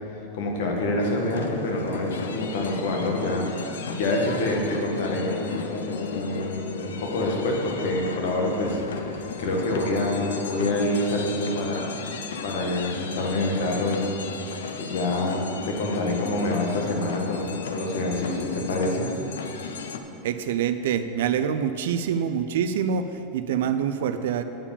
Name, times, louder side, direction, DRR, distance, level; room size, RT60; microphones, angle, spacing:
voice 1, 0.1-12.0 12.4-14.1 14.8-19.1, left 2 dB, 75° left, 0 dB, 1.6 m, -27 dB
sound 1, 1.0-20.0, left 5 dB, 90° left, 0.6 m, -35 dB
voice 2, 20.2-24.4, right 8 dB, 75° right, 9 dB, 0.4 m, -26 dB
8.6 x 4.8 x 7.0 m, 2.9 s
hypercardioid pair, 115°, 0 cm